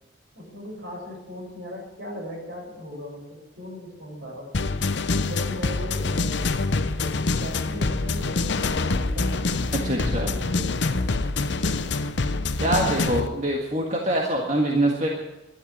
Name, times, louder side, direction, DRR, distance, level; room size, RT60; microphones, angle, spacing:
voice 1, 0.3-4.9 5.3-6.4 6.9-11.2 11.7-11.9, equal, 60° right, -2 dB, 7.1 m, -38 dB
sound 1, 4.5-13.3, left 3 dB, 60° left, 0.8 m, -25 dB
voice 2, 9.8-10.3 12.6-15.1, right 1 dB, 35° right, 0 dB, 1.8 m, -24 dB
12.5 x 11.5 x 8.8 m, 1.0 s
head